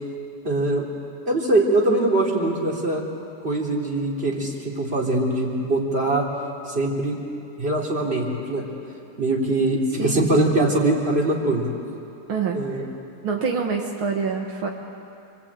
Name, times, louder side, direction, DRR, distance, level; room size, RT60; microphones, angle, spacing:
voice 1, 0.4-0.9 1.3-3.0 3.4-6.3 6.7-7.2 7.6-8.6 9.2-11.7 12.5-12.8, right 2 dB, 25° right, -2 dB, 3.6 m, -22 dB
voice 2, 10.0-10.3 12.3-12.8 13.2-14.7, right 5 dB, 75° right, 1 dB, 2.3 m, -26 dB
27.0 x 24.5 x 8.8 m, 2.6 s
omnidirectional pair, 2.3 m